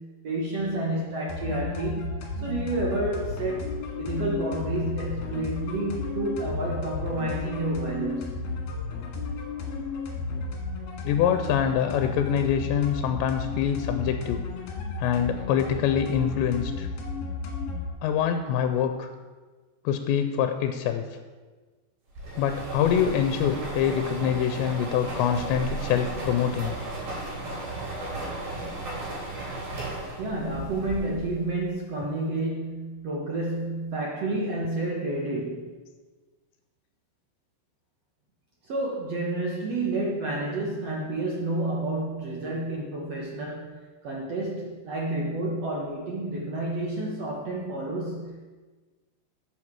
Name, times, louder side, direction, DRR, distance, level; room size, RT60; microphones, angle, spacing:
voice 1, 0.0-2.2 2.4-3.7 4.0-8.4 30.2-35.7 38.7-48.4, right 2 dB, 75° right, -3 dB, 1.5 m, -30 dB
sound 1, 1.3-17.9, left 3 dB, 65° left, 3.4 m, -33 dB
voice 2, 11.0-14.4 15.0-16.9 18.0-19.1 19.8-21.0 22.4-26.7, left 8 dB, 85° left, 7 dB, 2.9 m, -25 dB
sound 2, 22.2-31.5, right 2 dB, 55° right, 5.2 m, -35 dB
13.0 x 8.1 x 4.7 m, 1.3 s
omnidirectional pair, 5.0 m